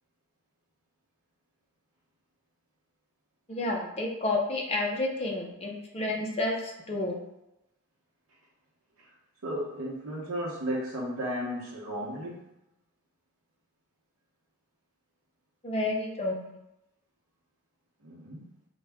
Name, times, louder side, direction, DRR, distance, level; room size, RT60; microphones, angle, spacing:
voice 1, 3.5-7.1 15.6-16.4, left 2 dB, 30° left, -1 dB, 0.6 m, -30 dB
voice 2, 9.4-12.4 18.0-18.4, equal, 90° right, -5 dB, 0.8 m, -34 dB
3.9 x 2.2 x 3.4 m, 0.89 s
head